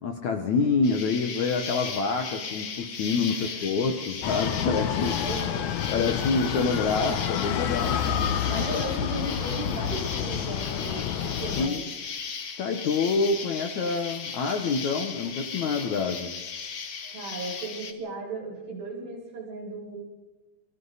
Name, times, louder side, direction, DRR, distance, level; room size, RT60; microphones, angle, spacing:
voice 1, 0.0-5.2 5.9-8.0 8.5-8.8 11.6-11.8 12.6-16.3, left 4 dB, 60° left, 5 dB, 2.1 m, -27 dB
Insect, 0.8-17.9, left 6 dB, 45° left, 1.9 m, -36 dB
voice 2, 3.3-3.7 5.2-5.7 6.1-6.2 8.5-11.8 17.1-20.0, right 2 dB, 65° right, -2 dB, 9.2 m, -36 dB
sound 1, 4.2-11.7, left 9 dB, 80° left, 1.7 m, -29 dB
27.0 x 24.0 x 4.1 m, 1.1 s
omnidirectional pair, 4.7 m